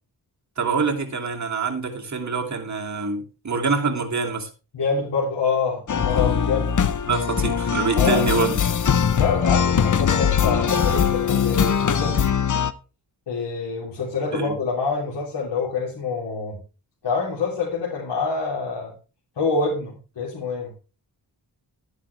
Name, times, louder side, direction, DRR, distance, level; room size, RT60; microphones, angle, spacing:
voice 1, 0.6-4.5 7.1-8.6 14.3-14.6, right 4 dB, 45° right, 2.7 m, -25 dB
voice 2, 4.7-6.8 7.9-8.5 9.2-12.2 13.3-16.6 17.0-18.9 19.4-20.7, left 4 dB, 80° left, 3.5 m, -26 dB
sound 1, 5.9-12.7, left 7 dB, 45° left, 0.8 m, -21 dB
12.5 x 9.9 x 3.4 m
wide cardioid pair, 85°, 41 cm